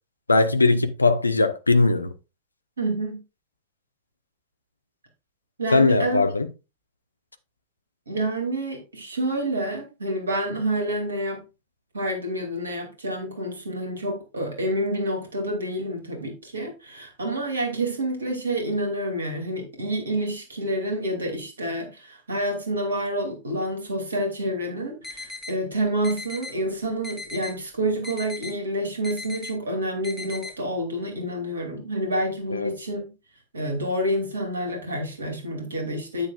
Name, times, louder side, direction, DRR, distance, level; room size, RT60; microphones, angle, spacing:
voice 1, 0.3-2.1 5.7-6.5 32.5-32.7, left 3 dB, 80° left, 0.6 m, -20 dB
voice 2, 2.8-3.2 5.6-6.2 8.1-11.4 11.9-33.1 33.5-36.3, right 1 dB, 70° right, 2.7 m, -28 dB
sound 1, 25.0-25.5 26.0-26.5 27.0-27.5 28.0-28.5 29.0-29.5 30.0-30.5, left 3 dB, 10° left, 2.4 m, -37 dB
9.5 x 8.2 x 2.4 m
figure-of-eight pair, 90°, 0 cm